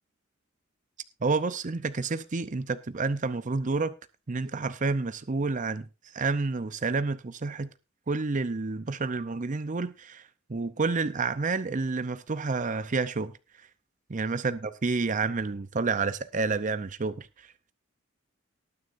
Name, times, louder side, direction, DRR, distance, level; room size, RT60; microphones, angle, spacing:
voice 1, 1.2-3.9 4.3-5.8 6.1-7.7 8.1-10.2 10.5-13.3 14.1-17.3, right 4 dB, 40° right, 0.6 m, -29 dB
19.5 x 9.4 x 2.6 m
head